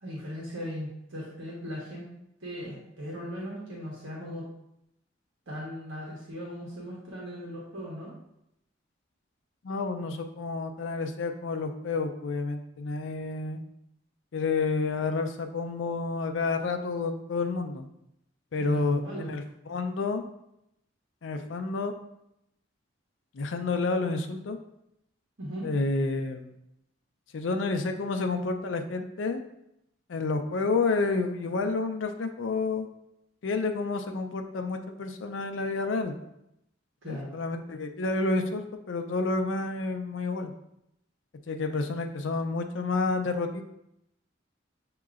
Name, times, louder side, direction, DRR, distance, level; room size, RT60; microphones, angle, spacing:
voice 1, 0.0-2.1 2.4-4.5 5.5-8.1 18.6-19.3 25.4-25.7 37.0-37.3, equal, 90° right, -6 dB, 1.3 m, -38 dB
voice 2, 9.6-13.6 14.3-17.9 18.5-20.2 21.2-21.9 23.3-24.6 25.6-26.5 27.3-29.4 30.1-32.9 33.4-36.1 37.0-40.5 41.5-43.7, left 3 dB, 75° left, 6 dB, 0.5 m, -30 dB
7.2 x 2.9 x 2.4 m, 0.81 s
head